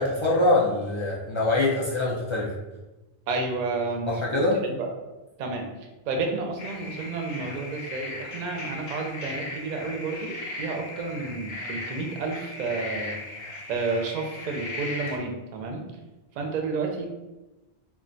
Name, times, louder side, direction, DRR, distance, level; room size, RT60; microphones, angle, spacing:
voice 1, 0.0-2.5 4.1-4.6, left 2 dB, 50° left, -6 dB, 0.3 m, -24 dB
voice 2, 3.3-4.9 5.4-5.7 6.1-13.4 13.7-15.8 16.4-17.1, right 3 dB, 55° right, 2 dB, 0.6 m, -31 dB
sound 1, 6.6-15.2, left 2 dB, 80° left, 0.9 m, -37 dB
2.4 x 2.2 x 3.8 m, 1.1 s
omnidirectional pair, 1.1 m